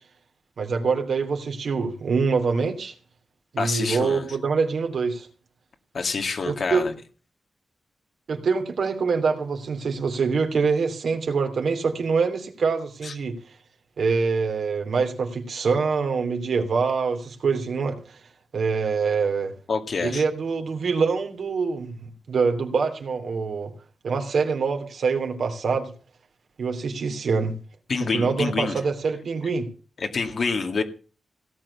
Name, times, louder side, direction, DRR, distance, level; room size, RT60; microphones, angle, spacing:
voice 1, 0.6-2.9 3.5-5.3 6.4-6.8 8.3-13.3 14.0-18.0 18.5-19.5 20.0-23.7 24.0-25.9 26.6-27.5 28.1-29.6, right 5 dB, 65° right, 5 dB, 2.9 m, -25 dB
voice 2, 3.6-4.3 5.9-6.9 13.0-13.1 19.7-20.2 27.9-28.8 30.0-30.8, left 4 dB, 50° left, 5 dB, 2.0 m, -27 dB
17.5 x 7.7 x 7.1 m, 0.38 s
wide cardioid pair, 180°, 0 cm